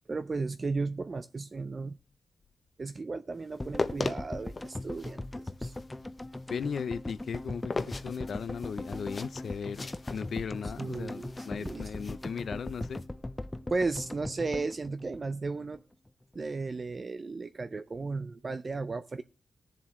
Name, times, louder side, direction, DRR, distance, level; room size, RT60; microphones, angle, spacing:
voice 1, 0.1-2.0 2.8-5.7 10.8-11.9 13.7-15.8 16.3-19.2, right 3 dB, 35° right, 0.5 m, -35 dB
sound 1, 3.5-13.0, left 3 dB, 30° left, 0.9 m, -40 dB
sound 2, 3.6-16.1 16.3-16.4, left 1 dB, 15° left, 0.6 m, -40 dB
voice 2, 6.5-13.0, left 6 dB, 60° left, 0.5 m, -37 dB
21.0 x 7.3 x 3.1 m
wide cardioid pair, 130°, 0 cm